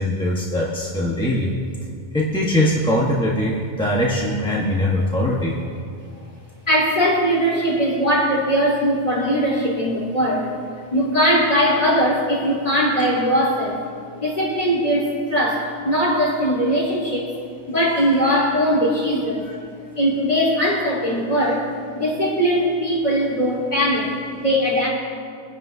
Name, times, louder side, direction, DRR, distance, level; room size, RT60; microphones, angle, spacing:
voice 1, 0.0-1.5 2.1-5.5, left 1 dB, 5° left, -5 dB, 1.2 m, -21 dB
voice 2, 6.7-10.5 10.9-13.8 14.2-17.3 17.7-19.6 19.9-21.7 21.9-24.9, equal, 35° left, -7 dB, 4.2 m, -20 dB
24.0 x 11.0 x 2.8 m, 2.3 s
omnidirectional pair, 1.1 m